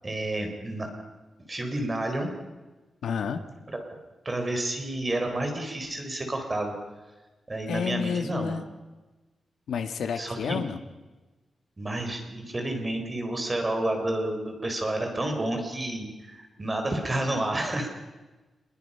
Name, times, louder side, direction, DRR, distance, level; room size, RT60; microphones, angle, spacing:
voice 1, 0.0-0.9 1.5-2.3 3.7-3.8 4.2-6.7 7.5-8.6 10.2-10.6 11.8-17.9, right 1 dB, 25° right, 4 dB, 4.3 m, -30 dB
voice 2, 3.0-3.4 7.7-8.7 9.7-10.8, left 6 dB, 85° left, 7 dB, 1.7 m, -30 dB
27.5 x 21.5 x 5.7 m, 1.2 s
wide cardioid pair, 115°, 0 cm